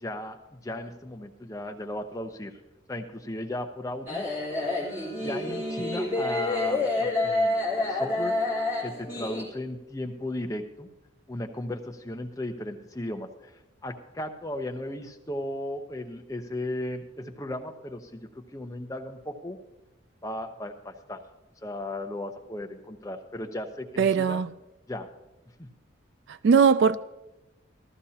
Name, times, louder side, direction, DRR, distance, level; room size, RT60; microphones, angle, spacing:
voice 1, 0.0-2.5 2.9-4.3 5.2-7.6 7.9-8.3 8.8-10.9 11.3-13.5 13.8-19.6 20.2-21.2 21.6-24.4 24.9-25.1 25.6-25.7, left 1 dB, 15° left, 0.8 m, -36 dB
sound 1, 4.1-9.4, left 2 dB, 10° right, 3.3 m, -28 dB
voice 2, 24.0-24.5 26.4-27.0, right 6 dB, 60° right, 0.3 m, -20 dB
14.5 x 13.5 x 2.8 m
head